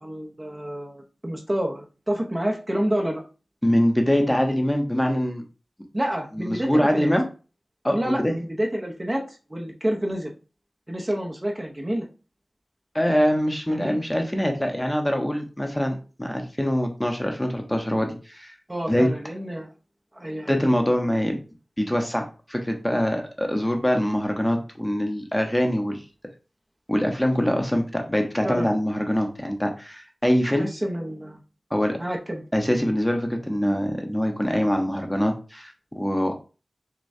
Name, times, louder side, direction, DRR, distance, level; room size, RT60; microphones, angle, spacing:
voice 1, 0.0-3.2 5.9-7.1 7.9-9.2 9.5-10.3 10.9-12.1 13.7-14.0 18.7-19.7 20.1-20.6 28.4-28.7 30.5-31.4 32.0-32.4, equal, 25° right, 0 dB, 0.8 m, -28 dB
voice 2, 3.6-5.4 6.4-7.2 7.8-8.3 12.9-18.5 18.9-19.1 20.5-21.4 21.8-26.0 26.9-30.7 31.7-32.0 32.5-36.3, equal, 10° left, 3 dB, 0.8 m, -24 dB
6.4 x 2.3 x 2.6 m, 0.34 s
wide cardioid pair, 55°, 0 cm